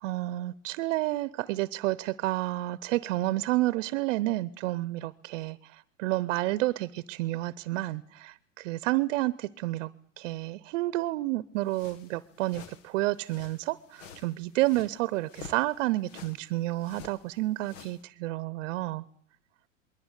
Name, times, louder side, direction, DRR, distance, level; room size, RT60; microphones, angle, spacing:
voice 1, 0.0-9.9 10.2-19.0, right 18 dB, 65° right, 19 dB, 0.8 m, -30 dB
sound 1, 11.7-18.0, left 7 dB, 70° left, 1.9 m, -50 dB
21.5 x 17.5 x 8.2 m, 0.64 s
supercardioid pair, 120°, 38 cm